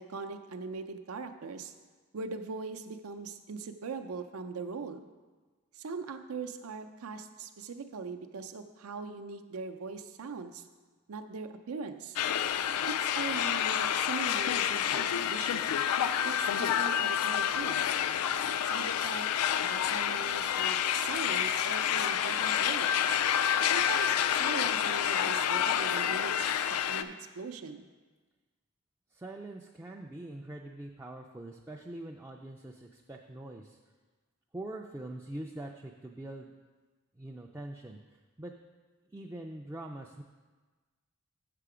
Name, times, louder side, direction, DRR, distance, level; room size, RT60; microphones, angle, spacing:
voice 1, 0.0-1.7 2.1-5.1 5.7-10.6 11.1-12.2 12.9-15.7 16.2-17.8 18.6-19.3 19.6-23.1 23.6-27.9, right 4 dB, 80° right, 7 dB, 0.6 m, -40 dB
sound 1, 12.2-27.0, left 9 dB, 80° left, 0.3 m, -29 dB
voice 2, 29.1-33.8 34.5-36.5 37.2-38.0 38.4-38.5 39.1-40.2, right 1 dB, 10° right, 1 dB, 0.3 m, -43 dB
6.8 x 6.6 x 4.9 m, 1.3 s
head